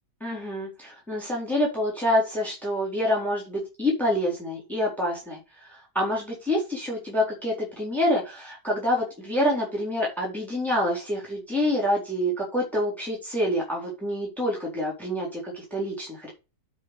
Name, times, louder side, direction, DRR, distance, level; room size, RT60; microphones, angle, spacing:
voice 1, 0.2-16.3, left 1 dB, ahead, -2 dB, 4.1 m, -27 dB
8.4 x 5.1 x 6.7 m, 0.29 s
omnidirectional pair, 1.9 m